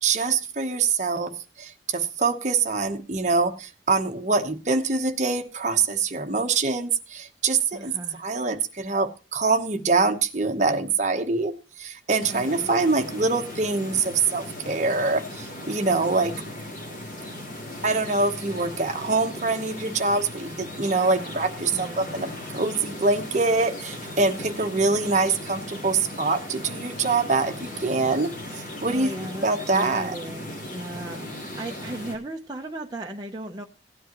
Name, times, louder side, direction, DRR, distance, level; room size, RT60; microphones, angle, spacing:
voice 1, 0.0-7.9 8.2-16.3 17.8-29.1 29.4-30.2, right 3 dB, 40° right, 7 dB, 1.0 m, -24 dB
voice 2, 7.7-8.3 12.3-12.8 20.9-21.4 21.7-22.4 28.9-33.6, right 1 dB, 20° right, 1 dB, 0.7 m, -37 dB
sound 1, 12.2-32.2, left 1 dB, 45° left, 3.6 m, -37 dB
17.0 x 10.0 x 3.0 m, 0.30 s
head